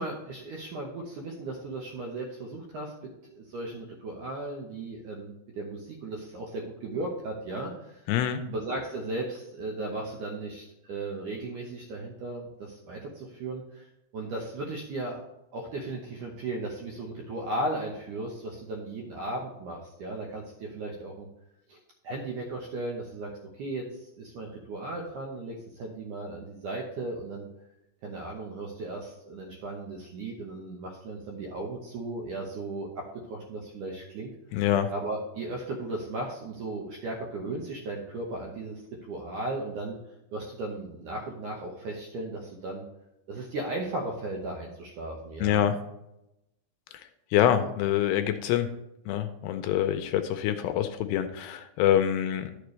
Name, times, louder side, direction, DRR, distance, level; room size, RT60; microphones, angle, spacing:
voice 1, 0.0-8.0 8.5-13.9 14.1-15.2 15.5-21.3 21.7-21.8 22.0-23.3 23.6-27.5 28.0-34.3 34.9-40.0 40.3-42.8 43.3-45.7, right 2 dB, 70° right, -1 dB, 1.9 m, -36 dB
voice 2, 8.1-8.4 34.5-34.9 45.4-45.8 47.3-48.7 49.1-52.5, left 11 dB, 80° left, 8 dB, 2.6 m, -25 dB
12.0 x 6.7 x 3.2 m, 0.87 s
omnidirectional pair, 5.0 m